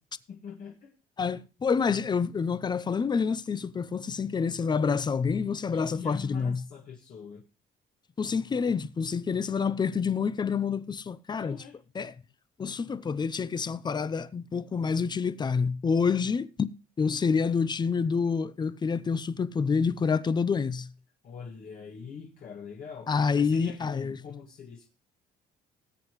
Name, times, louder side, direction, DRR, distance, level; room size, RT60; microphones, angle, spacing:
voice 1, 0.3-0.9 5.7-7.4 11.3-11.8 21.2-24.9, left 6 dB, 55° left, 1.9 m, -43 dB
voice 2, 1.2-6.6 8.2-11.6 11.9-12.1 12.6-16.7 17.0-20.9 23.1-24.2, left 5 dB, 25° left, 0.6 m, -28 dB
19.5 x 8.1 x 3.1 m
cardioid pair, 110°, 17 cm